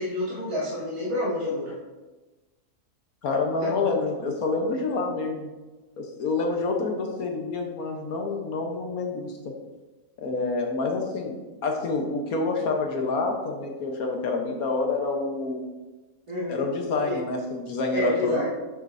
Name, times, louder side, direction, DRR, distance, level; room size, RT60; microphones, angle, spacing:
voice 1, 0.0-1.7 3.6-3.8 16.3-16.7 17.1-17.2 17.9-18.5, left 1 dB, 60° right, -9 dB, 2.9 m, -28 dB
voice 2, 3.2-5.5 6.0-9.5 10.2-15.6 16.5-18.5, left 3 dB, 65° left, 2 dB, 1.5 m, -28 dB
9.1 x 7.3 x 2.7 m, 1.2 s
omnidirectional pair, 1.7 m